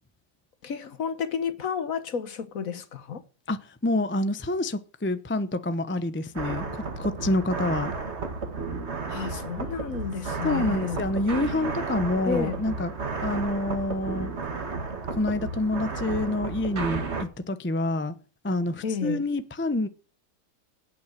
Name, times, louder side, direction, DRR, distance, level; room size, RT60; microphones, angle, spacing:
voice 1, 0.6-3.2 9.1-11.0 12.2-12.6 18.8-19.2, left 6 dB, 55° left, 1.4 m, -31 dB
voice 2, 3.5-7.9 10.4-12.9 13.2-14.3 15.1-18.1 18.4-19.9, left 2 dB, 15° left, 0.5 m, -27 dB
sound 1, 6.4-17.2, right 4 dB, 40° right, 1.8 m, -33 dB
10.0 x 8.9 x 8.0 m
omnidirectional pair, 1.9 m